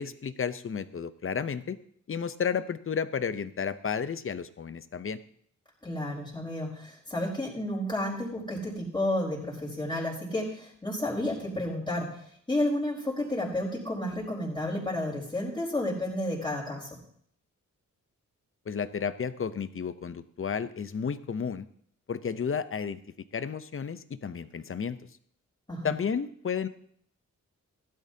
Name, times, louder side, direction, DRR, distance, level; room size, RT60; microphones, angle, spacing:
voice 1, 0.0-1.8 2.1-5.2 18.7-21.7 22.1-25.0 25.8-26.7, left 6 dB, 40° left, 13 dB, 0.7 m, -32 dB
voice 2, 5.8-16.9 25.7-25.9, left 1 dB, 15° left, -3 dB, 4.3 m, -31 dB
16.0 x 12.5 x 2.8 m, 0.63 s
wide cardioid pair, 110°, 32 cm